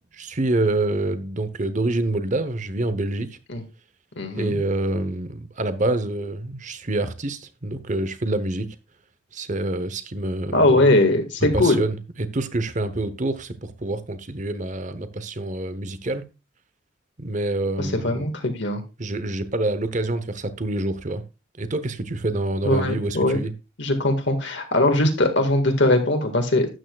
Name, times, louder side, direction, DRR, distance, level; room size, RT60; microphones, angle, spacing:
voice 1, 0.2-3.3 4.3-8.7 9.3-10.9 11.5-16.2 17.2-18.3 19.0-21.2 21.6-23.5, right 2 dB, 40° right, 0.9 m, -26 dB
voice 2, 4.2-4.6 10.5-11.8 17.8-18.8 22.6-23.4 23.8-26.7, left 2 dB, 60° left, 1.8 m, -20 dB
12.5 x 8.9 x 2.4 m
head